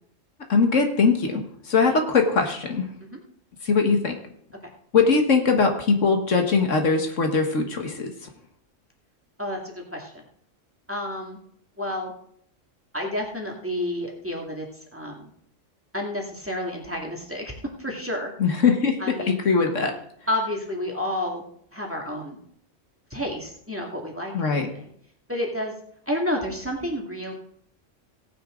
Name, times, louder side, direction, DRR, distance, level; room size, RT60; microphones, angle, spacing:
voice 1, 0.5-2.9 3.6-4.2 4.9-8.1 18.4-19.9 24.3-24.7, left 4 dB, 75° left, 4 dB, 1.9 m, -21 dB
voice 2, 9.4-10.1 10.9-11.4 11.8-12.1 12.9-14.7 14.9-15.3 15.9-18.3 19.0-19.4 20.3-21.4 21.7-22.4 23.1-24.9 25.3-25.7 26.1-27.3, left 1 dB, 10° right, -1 dB, 2.1 m, -30 dB
17.0 x 9.6 x 3.8 m, 0.66 s
omnidirectional pair, 1.3 m